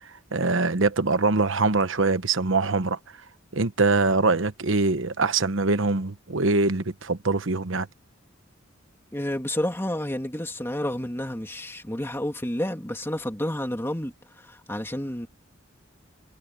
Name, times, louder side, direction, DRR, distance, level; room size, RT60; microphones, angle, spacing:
voice 1, 0.0-3.0 3.5-7.9, right 3 dB, 70° right, 1.1 m, -23 dB
voice 2, 9.1-15.3, left 1 dB, 10° left, 2.6 m, -30 dB
head